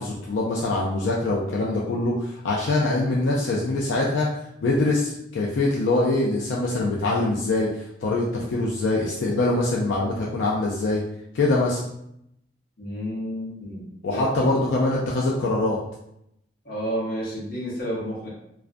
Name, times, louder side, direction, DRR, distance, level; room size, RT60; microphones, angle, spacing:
voice 1, 0.0-4.3 4.6-11.0 11.3-11.8 14.0-15.8, left 2 dB, 85° left, -3 dB, 0.4 m, -23 dB
voice 2, 12.8-14.5 16.6-18.3, equal, 55° left, -5 dB, 0.9 m, -31 dB
2.4 x 2.1 x 2.5 m, 0.79 s
head